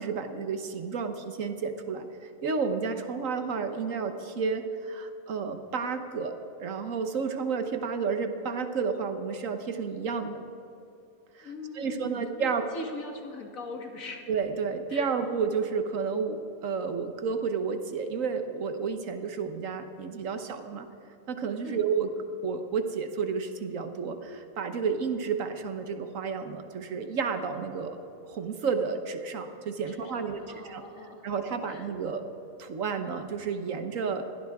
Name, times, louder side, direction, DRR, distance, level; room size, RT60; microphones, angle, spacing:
voice 1, 0.0-6.3 6.6-10.4 11.3-12.6 14.3-20.9 21.3-22.1 22.4-28.0 28.2-30.8 31.2-32.2 32.6-34.2, right 5 dB, 65° right, 8 dB, 1.4 m, -31 dB
voice 2, 11.4-14.2 14.9-15.1 21.6-21.8 29.9-31.4 31.7-31.9, left 2 dB, 70° left, 3 dB, 2.0 m, -41 dB
21.0 x 16.0 x 3.6 m, 2.8 s
omnidirectional pair, 1.5 m